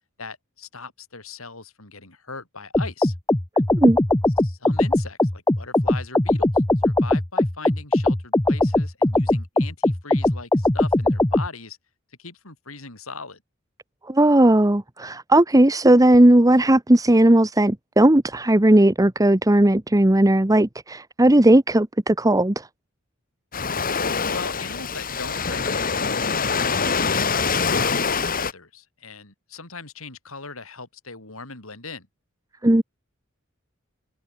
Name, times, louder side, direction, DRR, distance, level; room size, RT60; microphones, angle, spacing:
voice 1, 0.2-3.1 4.4-11.8 12.2-13.4 24.3-32.1, left 4 dB, 85° left, 6.9 m, -39 dB
sound 1, 2.7-11.5, left 1 dB, 15° left, 0.9 m, -20 dB
voice 2, 14.1-22.7 32.6-32.8, right 1 dB, 15° right, 1.0 m, -16 dB
Waves surf, 23.5-28.5, left 5 dB, 45° left, 2.4 m, -24 dB
head